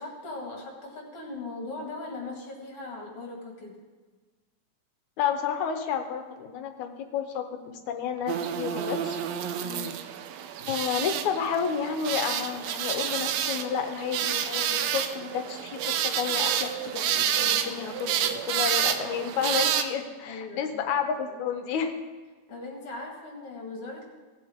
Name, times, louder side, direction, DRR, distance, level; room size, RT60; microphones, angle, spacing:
voice 1, 0.0-3.8 9.6-9.9 20.3-20.8 22.5-24.0, left 3 dB, 55° left, -1 dB, 2.9 m, -39 dB
voice 2, 5.2-9.2 10.7-21.9, left 7 dB, 80° left, 6 dB, 2.3 m, -31 dB
sound 1, 8.3-19.8, right 9 dB, 75° right, 1.8 m, -29 dB
18.0 x 7.8 x 3.6 m, 1.4 s
omnidirectional pair, 3.3 m